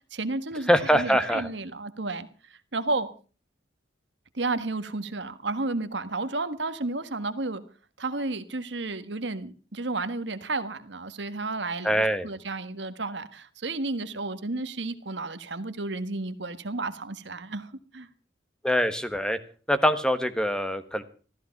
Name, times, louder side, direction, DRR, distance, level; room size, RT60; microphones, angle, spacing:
voice 1, 0.1-2.3 2.7-3.1 4.3-7.6 8.0-18.1, right 3 dB, 65° right, 11 dB, 1.5 m, -32 dB
voice 2, 0.7-1.5 11.8-12.3 18.6-19.4 19.7-21.0, equal, 5° left, 11 dB, 1.2 m, -23 dB
15.0 x 14.0 x 5.9 m, 0.39 s
head